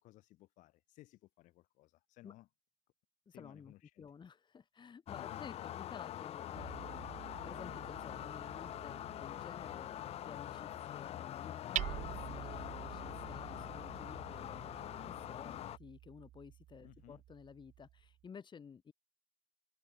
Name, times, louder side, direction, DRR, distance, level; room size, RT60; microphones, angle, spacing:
voice 1, 0.0-2.5 3.3-4.1 5.1-5.7 16.8-17.2, left 17 dB, 85° left, 2.3 m, -60 dB
voice 2, 3.3-18.9, left 6 dB, 40° left, 3.8 m, -53 dB
sound 1, 5.1-15.8, left 12 dB, 55° left, 0.4 m, -44 dB
Hammer, 6.5-18.3, right 13 dB, 70° right, 2.4 m, -48 dB
cardioid pair, 105°, 13 cm